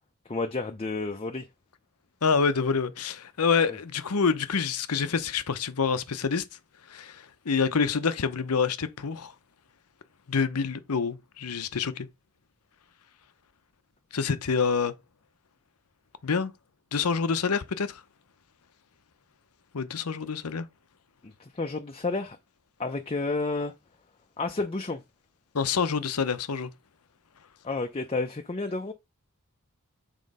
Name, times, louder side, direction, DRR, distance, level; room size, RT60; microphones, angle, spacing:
voice 1, 0.3-1.5 3.7-3.8 21.2-22.4 22.8-23.7 24.4-25.0 27.6-28.9, left 3 dB, 25° left, 0.6 m, -31 dB
voice 2, 2.2-6.4 6.9-9.3 10.3-12.1 14.1-14.9 16.2-16.5 16.9-18.0 19.7-20.7 25.5-26.7, left 5 dB, 80° left, 0.8 m, -27 dB
7.5 x 3.8 x 5.3 m
head